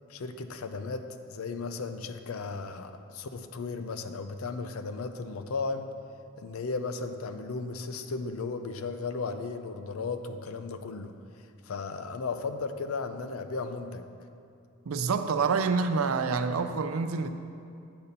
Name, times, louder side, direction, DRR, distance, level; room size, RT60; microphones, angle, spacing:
voice 1, 0.1-5.9 6.4-11.1 11.6-14.1, left 4 dB, 90° left, 8 dB, 0.5 m, -35 dB
voice 2, 14.9-17.3, right 5 dB, 85° right, 9 dB, 0.5 m, -27 dB
8.7 x 4.1 x 6.6 m, 2.5 s
head